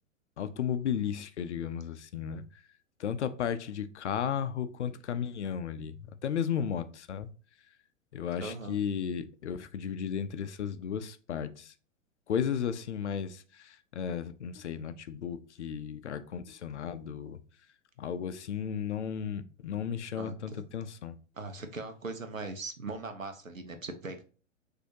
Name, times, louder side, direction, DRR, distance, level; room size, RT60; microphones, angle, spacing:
voice 1, 0.4-2.6 3.0-7.3 8.1-11.7 12.3-17.4 18.0-21.2, left 8 dB, 60° left, 0.6 m, -34 dB
voice 2, 8.4-8.8 20.2-20.6 21.4-24.2, right 3 dB, 85° right, 0.9 m, -40 dB
6.1 x 2.8 x 2.8 m
figure-of-eight pair, 105°, 39 cm